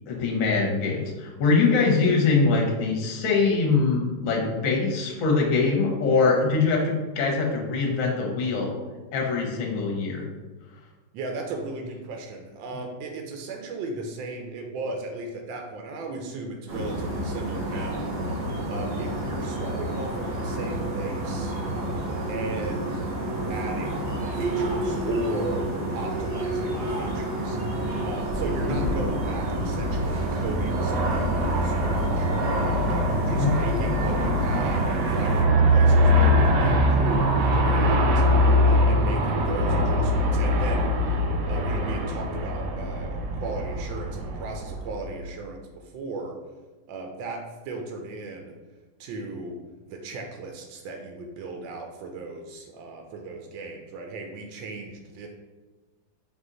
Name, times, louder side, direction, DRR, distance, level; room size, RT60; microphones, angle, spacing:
voice 1, 0.1-8.7 9.1-10.2 33.3-33.5, left 4 dB, 55° left, -1 dB, 1.1 m, -23 dB
voice 2, 11.1-18.1 18.7-21.5 22.3-23.0 23.5-24.0 24.3-25.7 25.9-27.6 28.0-32.3 32.9-38.2 38.6-40.9 41.4-46.4 46.9-48.5 49.0-49.6 49.9-55.3, right 2 dB, 90° right, 2 dB, 1.3 m, -36 dB
sound 1, 16.7-35.4, right 1 dB, 50° right, 0.7 m, -30 dB
Aircraft, 28.0-45.3, equal, 75° right, 1.1 m, -23 dB
3.9 x 2.8 x 3.8 m, 1.2 s
omnidirectional pair, 2.0 m